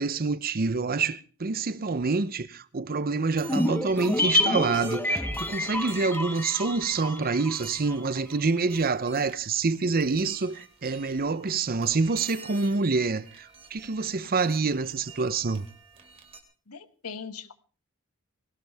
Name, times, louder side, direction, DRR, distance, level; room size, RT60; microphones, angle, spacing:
voice 1, 0.0-15.7, right 4 dB, 45° right, 0.7 m, -27 dB
sound 1, 3.2-16.4, right 4 dB, 25° right, 3.0 m, -50 dB
sound 2, 3.4-7.9 8.2-8.3, left 1 dB, 10° left, 1.1 m, -28 dB
voice 2, 16.7-17.5, left 6 dB, 90° left, 1.3 m, -40 dB
19.5 x 18.5 x 3.5 m
head